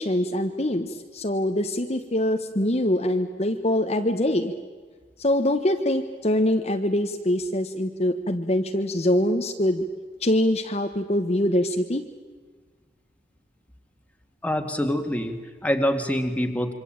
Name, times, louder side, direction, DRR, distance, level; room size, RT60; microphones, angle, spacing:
voice 1, 0.0-4.5 5.2-9.8 10.2-12.0, left 1 dB, 35° left, 4 dB, 1.3 m, -24 dB
voice 2, 14.4-16.7, equal, 10° left, 5 dB, 2.1 m, -25 dB
27.0 x 24.5 x 8.9 m, 1.4 s
head